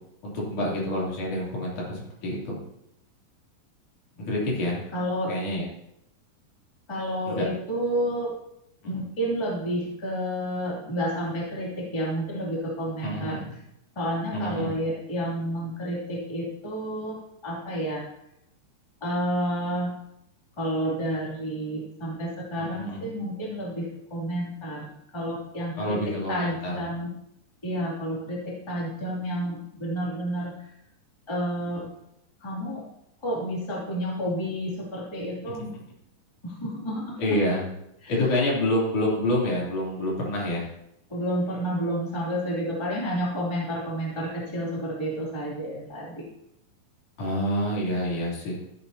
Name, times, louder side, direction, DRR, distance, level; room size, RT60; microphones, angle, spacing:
voice 1, 0.2-2.6 4.2-4.8 5.3-5.7 7.3-7.5 8.8-9.0 13.0-13.5 14.3-14.7 22.6-23.0 25.8-26.8 35.5-35.6 37.2-37.7 38.1-40.7 47.2-48.6, left 1 dB, 60° left, -5 dB, 4.6 m, -27 dB
voice 2, 4.9-5.3 6.9-8.3 8.8-13.4 14.0-17.2 17.4-18.0 19.0-19.9 20.6-26.0 26.3-27.1 27.6-30.7 31.3-31.8 32.4-32.8 33.2-35.7 36.4-37.1 38.0-38.2 41.1-46.2, equal, 10° left, -5 dB, 2.2 m, -30 dB
15.0 x 9.8 x 2.9 m, 0.80 s
omnidirectional pair, 4.0 m